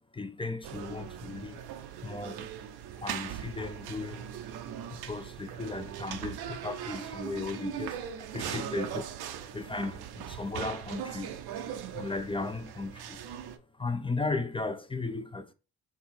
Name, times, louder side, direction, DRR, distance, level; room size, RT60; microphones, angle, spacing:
voice 1, 0.1-1.6 2.0-2.5 3.0-4.3 4.9-9.2 9.5-11.4 11.9-13.2 13.7-15.5, left 3 dB, 15° left, 0.5 m, -36 dB
sound 1, 0.6-13.6, right 9 dB, 70° right, 0.6 m, -40 dB
4.1 x 2.3 x 4.3 m
supercardioid pair, 50°, 40 cm